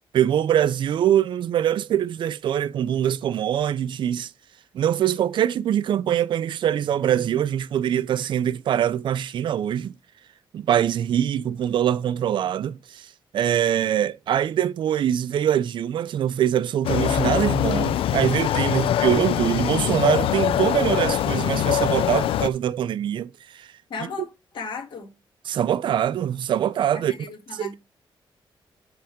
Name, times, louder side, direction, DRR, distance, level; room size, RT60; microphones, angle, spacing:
voice 1, 0.1-4.3 4.7-9.9 10.5-23.7 25.5-27.1 27.6-27.7, right 10 dB, 60° right, 0.4 m, -23 dB
sound 1, 16.8-22.5, left 10 dB, 80° left, 0.4 m, -23 dB
voice 2, 23.9-24.3 24.5-25.1 26.9-27.8, left 4 dB, 60° left, 2.1 m, -35 dB
7.8 x 3.4 x 5.0 m
wide cardioid pair, 160°, 9 cm